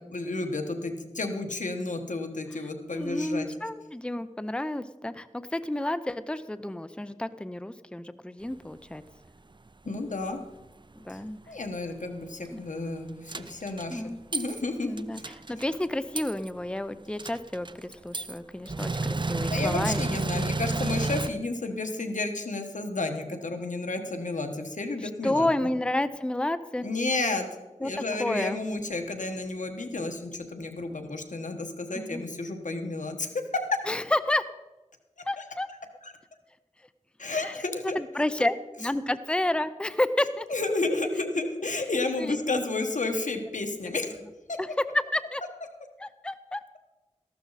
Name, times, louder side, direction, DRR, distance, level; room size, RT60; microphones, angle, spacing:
voice 1, 0.1-3.5 9.8-10.4 11.1-11.2 11.5-14.9 19.5-25.7 26.8-27.5 27.8-33.3 35.4-35.5 36.0-36.1 37.2-38.0 40.5-44.2, left 2 dB, 90° left, 5 dB, 1.4 m, -31 dB
voice 2, 2.9-9.0 11.0-11.4 12.5-12.6 13.9-14.2 14.8-15.2 15.5-20.0 20.3-20.5 25.0-26.9 27.8-27.9 28.2-28.6 31.9-32.2 33.9-34.5 35.3-35.7 37.3-37.5 37.8-38.5 38.8-40.5 42.2-42.4 44.6-44.7 45.1-45.4 46.0-46.8, left 1 dB, 10° left, 12 dB, 0.5 m, -30 dB
sound 1, 13.3-13.9 14.3-14.6 15.0-15.8 16.2-16.5 16.8-16.9 17.2-18.4 18.7-21.3, right 3 dB, 40° right, 0.5 m, -30 dB
14.0 x 12.0 x 4.1 m, 1.1 s
wide cardioid pair, 50°, 13 cm